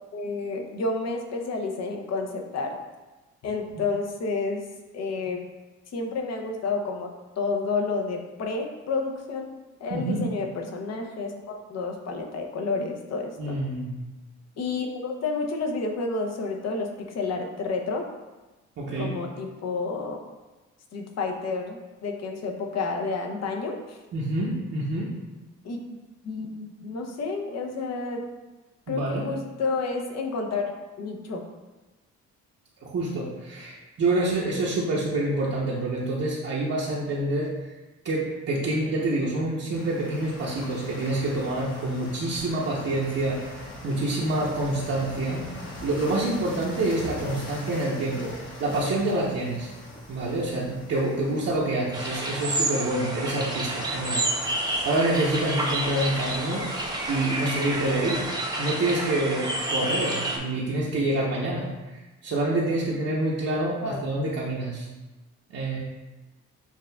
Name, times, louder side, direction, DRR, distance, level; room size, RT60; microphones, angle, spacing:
voice 1, 0.1-2.7 3.4-4.6 4.9-5.4 5.9-9.5 9.8-13.6 14.6-18.0 19.0-20.2 20.9-24.0 25.6-25.8 26.2-28.4 28.9-30.7 31.0-31.5 63.8-64.0, left 3 dB, 60° left, 2 dB, 0.8 m, -30 dB
voice 2, 9.9-10.2 13.4-13.9 18.8-19.1 24.1-25.1 28.9-29.2 32.8-37.5 38.0-45.4 45.8-48.3 48.6-49.7 50.1-56.7 57.1-58.2 58.6-61.7 62.2-64.9 65.5-65.8, right 2 dB, 55° right, -6 dB, 0.9 m, -27 dB
sound 1, 39.7-58.3, left 1 dB, 40° left, 1.0 m, -42 dB
sound 2, 51.9-60.4, right 1 dB, 15° right, 0.7 m, -29 dB
7.2 x 2.4 x 2.3 m, 1.1 s
cardioid pair, 90°, 30 cm